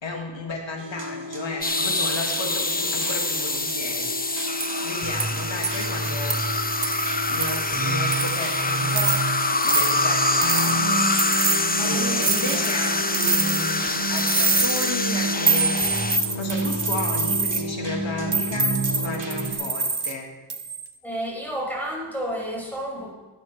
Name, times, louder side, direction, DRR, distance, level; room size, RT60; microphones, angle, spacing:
voice 1, 0.0-4.5 4.8-6.4 7.3-9.2 9.6-11.2 11.8-13.8 14.1-15.9 16.4-18.7 19.0-20.3, left 3 dB, 80° left, 1 dB, 1.9 m, -33 dB
sound 1, 0.8-19.5, right 2 dB, 40° right, 3.1 m, -31 dB
sound 2, 1.6-16.2, left 2 dB, 20° left, 0.8 m, -25 dB
sound 3, 4.6-4.7 5.2-5.3 5.6-5.9 6.3-6.4 6.8-7.1 7.4-7.6 8.1-8.5 8.9-9.2 9.6-9.9 10.4-10.8 11.2-11.6 12.2-12.8 13.1-13.8 14.1-14.9 15.5-17.6 18.3-20.1 20.5-20.9, right 4 dB, 60° right, 1.2 m, -25 dB
voice 2, 11.8-12.7 13.0-13.1 13.4-13.5 21.0-23.1, equal, 5° left, -2 dB, 5.3 m, -32 dB
13.5 x 9.3 x 7.1 m, 1.2 s
wide cardioid pair, 50°, 45 cm